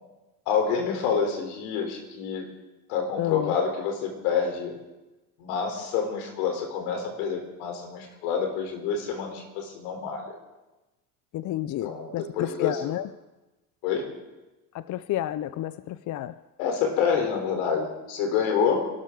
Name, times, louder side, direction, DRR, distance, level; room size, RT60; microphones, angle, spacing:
voice 1, 0.5-2.5 2.9-4.8 5.4-10.3 11.8-13.0 13.8-14.1 16.6-18.9, left 6 dB, 75° left, 4 dB, 3.7 m, -27 dB
voice 2, 11.3-12.2 12.6-13.0 14.9-16.3, left 13 dB, 40° left, 16 dB, 0.5 m, -30 dB
25.0 x 12.5 x 3.8 m, 1.1 s
hypercardioid pair, 80°, 45 cm